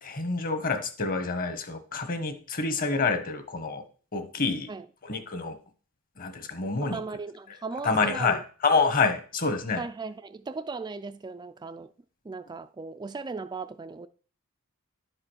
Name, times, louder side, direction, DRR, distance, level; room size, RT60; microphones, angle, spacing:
voice 1, 0.0-3.8 4.1-4.7 5.0-5.6 6.2-7.0 7.8-9.8, left 4 dB, 40° left, 1.3 m, -27 dB
voice 2, 6.8-8.4 9.8-11.9 12.2-14.1, right 4 dB, 20° right, 0.3 m, -37 dB
11.0 x 4.9 x 6.3 m
head